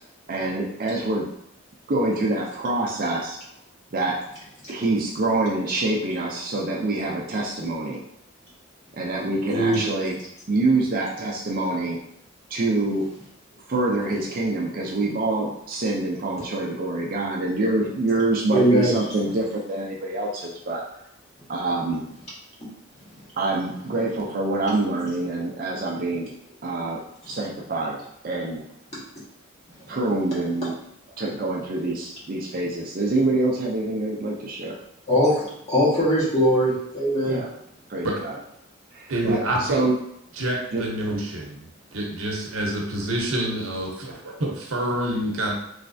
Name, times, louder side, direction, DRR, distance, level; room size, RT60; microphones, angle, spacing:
voice 1, 0.3-1.3 1.9-3.4 3.9-4.2 4.7-8.0 8.9-10.2 10.5-12.0 12.5-13.1 13.7-20.8 21.5-22.0 23.4-26.3 26.6-27.0 27.3-28.0 28.2-28.6 29.9-30.7 31.2-34.8 37.2-37.5 37.9-38.4 38.9-39.9 40.7-40.8, right 2 dB, 45° right, -1 dB, 0.4 m, -25 dB
voice 2, 9.5-9.8 18.5-18.9 35.1-37.4, equal, 30° left, -8 dB, 1.4 m, -20 dB
voice 3, 39.1-39.8 40.4-45.5, right 1 dB, 80° right, 0 dB, 0.8 m, -27 dB
3.2 x 3.1 x 2.6 m, 0.74 s
head